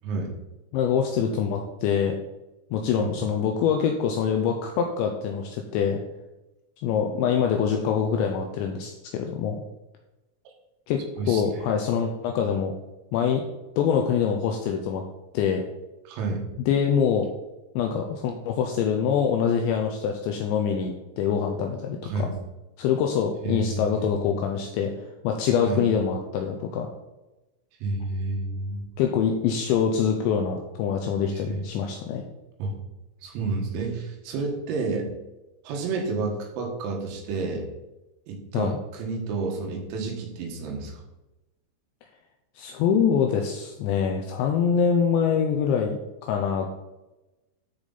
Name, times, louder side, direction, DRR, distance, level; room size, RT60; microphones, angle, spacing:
voice 1, 0.7-2.1 2.7-6.0 6.8-9.6 10.9-11.0 11.3-12.7 13.1-13.4 13.8-15.0 15.3-15.6 16.7-17.3 17.8-22.3 22.8-24.9 25.2-26.9 29.0-32.2 38.5-38.8 42.6-46.8, left 7 dB, 85° left, 3 dB, 2.7 m, -24 dB
voice 2, 11.2-11.6 16.1-16.4 22.0-22.3 23.4-24.4 25.6-25.9 27.8-28.9 31.3-31.6 32.6-32.8 33.2-35.1 35.7-37.7 38.3-41.0, right 3 dB, 90° right, 1 dB, 4.3 m, -30 dB
13.5 x 5.0 x 4.0 m, 1.0 s
omnidirectional pair, 5.8 m